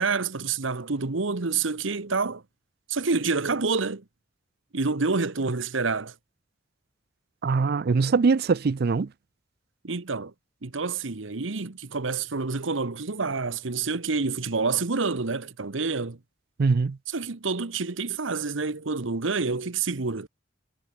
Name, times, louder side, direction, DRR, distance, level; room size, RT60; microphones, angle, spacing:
voice 1, 0.0-2.4 2.9-4.0 4.7-6.1 9.8-10.3 10.6-16.2 17.1-20.3, right 4 dB, 80° right, 1.2 m, -28 dB
voice 2, 7.4-9.1 16.6-17.0, right 4 dB, 55° right, 0.4 m, -22 dB
head